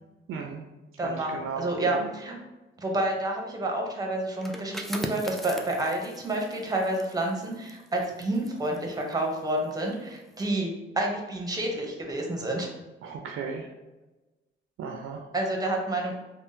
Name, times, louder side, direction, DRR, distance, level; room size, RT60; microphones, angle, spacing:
voice 1, 0.3-0.6 1.0-2.1 13.0-13.7 14.8-15.3, right 5 dB, 85° right, 2 dB, 0.4 m, -35 dB
voice 2, 1.0-2.3 2.8-12.7 15.3-16.1, right 1 dB, 20° right, 1 dB, 0.7 m, -29 dB
sound 1, 4.3-9.8 10.2-10.4, equal, ahead, 0.3 m, -40 dB
3.5 x 2.0 x 2.7 m, 1.1 s
cardioid pair, 95°, 21 cm